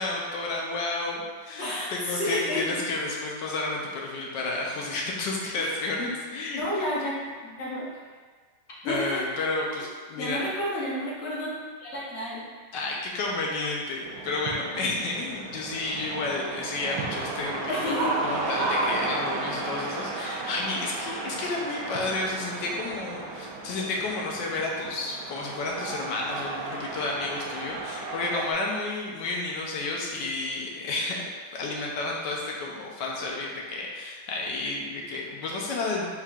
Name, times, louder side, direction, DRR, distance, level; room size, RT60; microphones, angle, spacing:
voice 1, 0.0-6.6 8.8-10.4 12.7-36.1, left 2 dB, 80° left, -1 dB, 1.3 m, -31 dB
voice 2, 1.6-2.6 5.6-5.7 6.0-6.1 6.6-7.1 7.4-7.9 8.8-9.2 10.2-12.5 17.7-18.3, left 1 dB, 45° left, -6 dB, 1.0 m, -31 dB
sound 1, 14.0-28.5, right 3 dB, 80° right, 1.2 m, -34 dB
4.5 x 3.6 x 2.4 m, 1.5 s
omnidirectional pair, 1.9 m